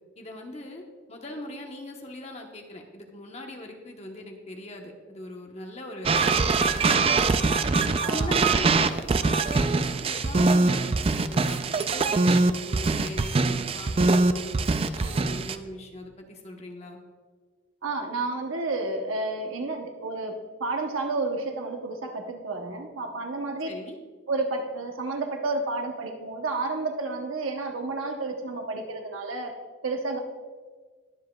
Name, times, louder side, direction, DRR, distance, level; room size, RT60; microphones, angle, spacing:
voice 1, 0.2-0.8 1.1-7.3 8.1-17.0 23.6-24.0, left 1 dB, 30° left, 2 dB, 1.0 m, -40 dB
sound 1, 6.1-15.6, right 3 dB, 30° right, 0.3 m, -23 dB
voice 2, 8.0-8.4 17.8-23.7 24.3-29.5 29.8-30.2, right 3 dB, 85° right, 4 dB, 0.9 m, -31 dB
20.5 x 7.4 x 2.3 m, 1.5 s
head